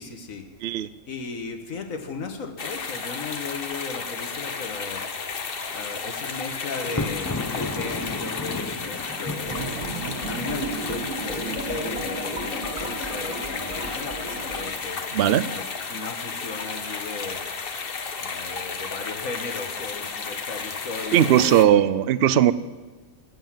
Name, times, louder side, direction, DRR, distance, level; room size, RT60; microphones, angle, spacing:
voice 1, 0.0-0.5 1.1-5.0 5.7-9.9 10.2-15.0 15.5-15.6 15.9-17.4 18.2-21.7, left 4 dB, 75° left, 5 dB, 1.8 m, -36 dB
sound 1, 2.6-21.6, left 5 dB, 45° left, 1.2 m, -33 dB
Thunder, 6.8-10.9, left 2 dB, 25° left, 0.4 m, -33 dB
sound 2, 9.5-14.7, right 2 dB, 35° right, 3.3 m, -33 dB
voice 2, 15.1-15.5 21.1-22.5, right 11 dB, 60° right, 16 dB, 0.7 m, -18 dB
20.5 x 7.9 x 7.5 m, 1.3 s
omnidirectional pair, 1.4 m